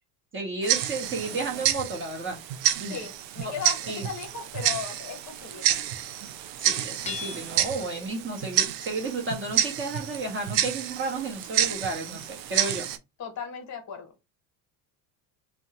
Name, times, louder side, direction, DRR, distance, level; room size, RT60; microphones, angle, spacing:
voice 1, 0.3-2.4 2.8-3.0 3.4-3.5 3.9-4.1 6.6-12.9, right 3 dB, 25° right, 0.8 m, -32 dB
Tick-tock, 0.6-13.0, right 11 dB, 85° right, 0.6 m, -29 dB
voice 2, 2.9-5.7 7.5-8.2 13.2-14.1, left 6 dB, 35° left, 0.9 m, -37 dB
Hammer / Chink clink, 7.1-7.9, left 6 dB, 15° left, 0.3 m, -37 dB
2.7 x 2.2 x 2.8 m
supercardioid pair, 100°, 49 cm